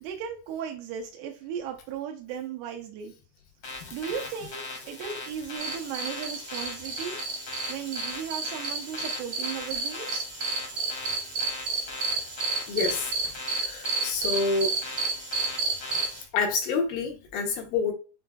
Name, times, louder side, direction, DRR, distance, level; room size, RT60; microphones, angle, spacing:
voice 1, 0.0-3.1 3.9-7.2 7.7-10.3, right 8 dB, 90° right, 2.8 m, -36 dB
sound 1, 3.6-16.2, left 2 dB, 55° left, 1.4 m, -40 dB
sound 2, 5.6-16.2, right 4 dB, 65° right, 1.4 m, -32 dB
voice 2, 12.7-13.1 13.5-14.8 16.3-17.9, left 4 dB, 75° left, 2.3 m, -28 dB
6.9 x 2.6 x 2.3 m
omnidirectional pair, 4.5 m